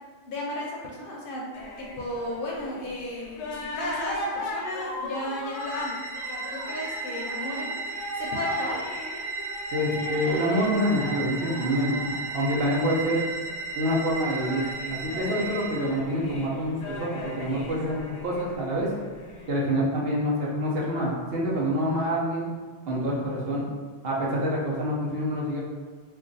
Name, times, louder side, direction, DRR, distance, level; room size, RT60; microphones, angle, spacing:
voice 1, 0.3-1.5 1.8-8.8, left 1 dB, 60° left, -2 dB, 0.7 m, -35 dB
sound 1, 1.5-19.5, left 2 dB, 90° left, 0.9 m, -38 dB
sound 2, 5.4-16.0, right 3 dB, 50° right, 0.4 m, -35 dB
voice 2, 9.7-13.2 13.7-14.6 14.9-18.9 19.5-22.5 22.9-23.6 24.0-25.6, equal, 65° right, -4 dB, 0.9 m, -26 dB
2.4 x 2.2 x 3.8 m, 1.5 s
omnidirectional pair, 1.1 m